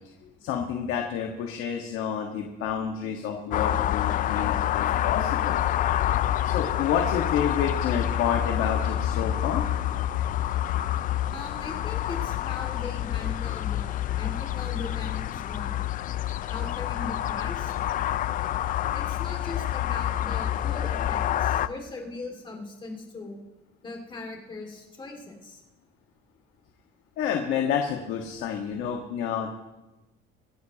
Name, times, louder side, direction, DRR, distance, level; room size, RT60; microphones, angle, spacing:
voice 1, 0.4-5.6 6.4-9.6 27.2-29.5, left 8 dB, 85° left, 1 dB, 1.6 m, -29 dB
sound 1, 3.5-21.7, left 12 dB, 40° left, 0.4 m, -27 dB
voice 2, 11.3-15.7 16.5-17.7 18.9-23.4 23.8-25.6, left 2 dB, 25° left, 1 dB, 2.4 m, -39 dB
25.5 x 12.0 x 3.0 m, 1.0 s
cardioid pair, 170°, 21 cm